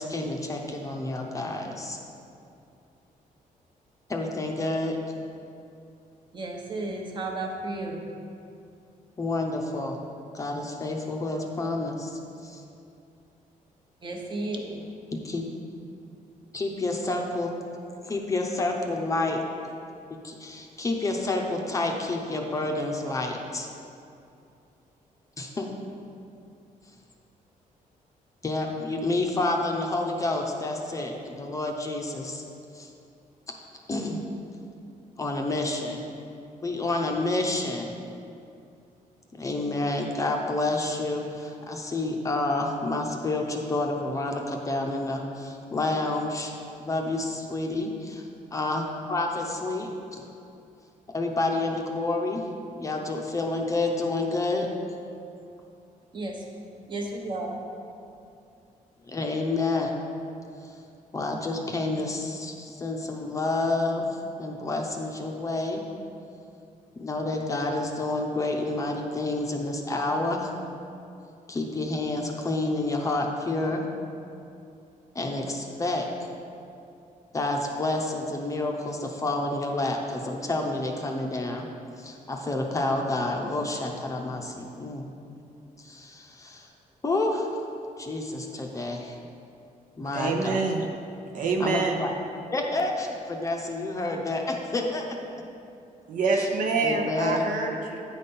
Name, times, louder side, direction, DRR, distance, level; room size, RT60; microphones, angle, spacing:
voice 1, 0.0-2.0 4.1-5.0 9.2-10.0 10.3-12.6 15.2-15.4 16.5-17.5 18.0-19.4 20.2-23.7 25.4-25.7 28.4-32.4 32.7-32.9 33.5-33.6 33.9-34.2 35.2-36.0 36.6-37.9 39.3-46.5 46.8-48.2 48.5-50.2 51.1-52.4 52.8-54.7 59.1-60.0 61.1-64.1 64.4-65.8 67.0-70.5 71.5-73.8 75.1-76.3 77.3-81.7 82.0-85.0 85.8-86.7 87.0-87.5 88.0-89.2 90.0-90.6 91.6-92.1 92.5-95.2 96.3-96.5 96.8-97.5, left 2 dB, 20° left, 1 dB, 0.6 m, -29 dB
voice 2, 6.3-8.0 14.0-14.8 56.1-56.3 56.9-57.9, right 2 dB, 35° right, 1 dB, 1.0 m, -33 dB
voice 3, 90.1-90.9 91.3-92.0 96.1-98.0, right 4 dB, 65° right, 2 dB, 0.9 m, -26 dB
9.6 x 4.2 x 5.4 m, 2.6 s
cardioid pair, 150°, 14 cm